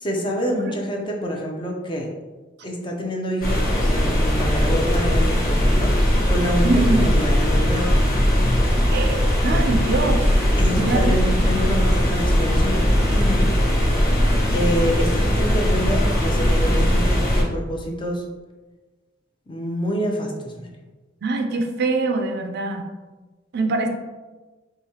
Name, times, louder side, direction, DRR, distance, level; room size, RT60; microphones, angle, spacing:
voice 1, 0.0-2.1 2.6-5.9 6.3-8.0 10.6-12.8 13.1-13.5 14.5-18.2 19.5-20.7, equal, 25° left, 0 dB, 0.6 m, -27 dB
sound 1, 3.4-17.4, equal, 50° left, 1.1 m, -19 dB
voice 2, 6.6-7.0 8.9-10.4 10.7-11.4 21.2-22.9 23.5-23.9, right 3 dB, 60° right, 4 dB, 0.5 m, -23 dB
4.9 x 2.8 x 2.8 m, 1.2 s
head